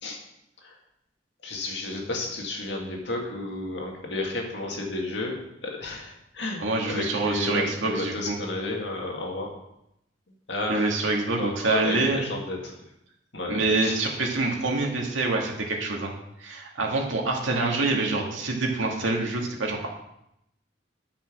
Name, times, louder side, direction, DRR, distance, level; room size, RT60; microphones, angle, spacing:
voice 1, 1.4-9.5 10.5-10.8 11.4-12.7 13.3-14.0, left 2 dB, 65° left, 0 dB, 2.2 m, -32 dB
voice 2, 6.6-8.4 10.7-12.2 13.5-19.9, right 3 dB, 85° right, 0 dB, 2.2 m, -26 dB
11.0 x 5.8 x 6.2 m, 0.81 s
head